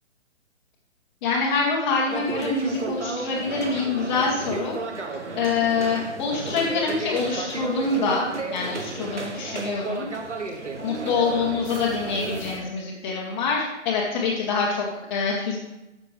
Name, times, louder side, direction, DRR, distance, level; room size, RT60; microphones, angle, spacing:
voice 1, 1.2-4.8 5.4-10.1 10.8-15.6, left 4 dB, 20° left, -7 dB, 1.2 m, -25 dB
sound 1, 2.1-12.6, right 3 dB, 75° right, 1.3 m, -33 dB
11.0 x 6.6 x 3.3 m, 0.97 s
figure-of-eight pair, 135°, 36 cm